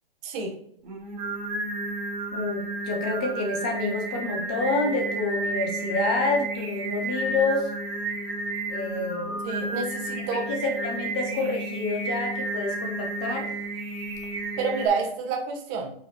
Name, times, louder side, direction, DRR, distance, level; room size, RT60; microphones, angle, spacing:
voice 1, 0.2-0.5 9.4-10.5 14.6-15.9, right 4 dB, 20° right, 2 dB, 1.1 m, -28 dB
Singing, 0.8-14.9, right 2 dB, 40° right, 2.7 m, -32 dB
voice 2, 2.3-7.7 8.7-9.4 10.1-13.4, left 3 dB, 10° left, 2 dB, 0.4 m, -28 dB
8.6 x 5.6 x 3.0 m, 0.72 s
hypercardioid pair, 165°, 30 cm